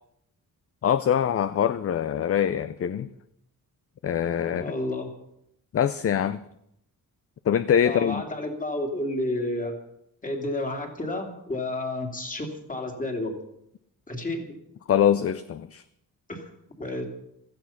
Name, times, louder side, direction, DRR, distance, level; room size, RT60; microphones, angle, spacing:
voice 1, 0.8-3.1 4.0-4.6 5.7-6.4 7.5-8.2 14.9-15.8, left 9 dB, 40° left, 0.5 m, -23 dB
voice 2, 4.5-5.1 7.8-9.7 10.2-13.3 14.1-14.5 16.3-16.4 16.7-17.0, left 1 dB, 25° left, 2.6 m, -30 dB
16.0 x 14.5 x 5.8 m
wide cardioid pair, 175°, 35 cm